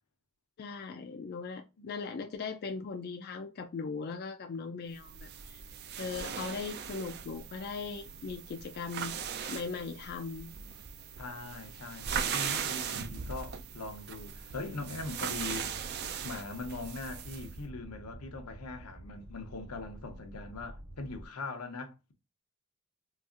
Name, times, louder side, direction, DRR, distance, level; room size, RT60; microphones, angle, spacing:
voice 1, 0.6-5.6 6.0-9.1 9.5-10.5, left 4 dB, 45° left, 0.3 m, -39 dB
sound 1, 5.0-17.5, right 7 dB, 45° right, 0.3 m, -39 dB
voice 2, 11.2-15.7 16.2-22.1, left 3 dB, 85° left, 0.7 m, -41 dB
sound 2, 14.7-21.3, right 1 dB, 65° right, 0.8 m, -49 dB
4.0 x 2.4 x 2.4 m
head